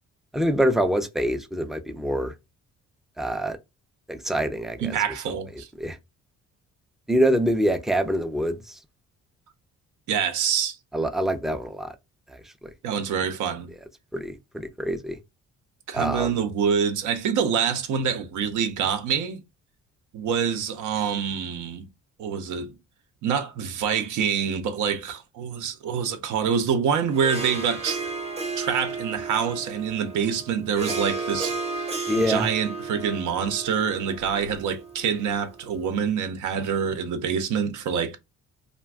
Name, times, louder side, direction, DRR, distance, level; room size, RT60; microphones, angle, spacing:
voice 1, 0.3-2.3 3.2-3.6 4.1-5.0 5.3-5.4 5.8-6.0 7.1-8.8 10.9-11.9 12.3-12.7 14.1-15.2 15.9-16.4 32.1-32.5, equal, ahead, 0.4 m, -25 dB
voice 2, 4.8-5.7 10.1-10.8 12.8-13.7 15.9-19.4 20.1-21.9 22.2-22.7 23.2-28.1 28.6-38.2, right 7 dB, 75° right, 0.6 m, -26 dB
Harp, 27.1-35.8, right 4 dB, 20° right, 0.8 m, -33 dB
2.4 x 2.2 x 3.4 m
cardioid pair, 90°, 30 cm